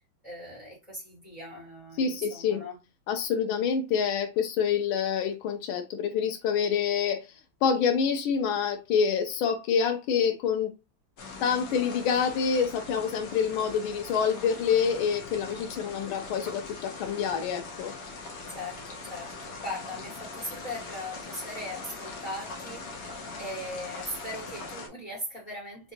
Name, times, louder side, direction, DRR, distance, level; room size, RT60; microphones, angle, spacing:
voice 1, 0.2-2.8 18.5-25.9, left 1 dB, 20° left, 2.4 m, -39 dB
voice 2, 2.0-2.6 3.1-7.3 7.6-10.7 11.4-17.9, left 7 dB, 90° left, 1.5 m, -27 dB
sound 1, 11.2-24.9, left 3 dB, 60° left, 1.5 m, -41 dB
3.9 x 3.4 x 2.7 m
omnidirectional pair, 2.2 m